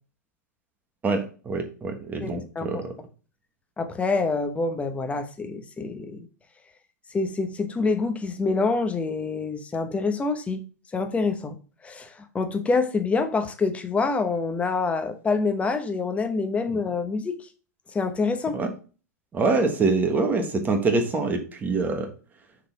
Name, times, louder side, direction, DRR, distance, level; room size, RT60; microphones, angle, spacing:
voice 1, 1.0-2.9 18.5-18.7 19.3-22.1, right 3 dB, 20° right, 1.5 m, -25 dB
voice 2, 2.2-2.8 3.8-6.3 7.1-10.6 10.9-11.6 11.8-17.5 17.9-18.6, left 4 dB, 15° left, 0.9 m, -26 dB
6.6 x 4.0 x 4.7 m
hypercardioid pair, 125°, 9 cm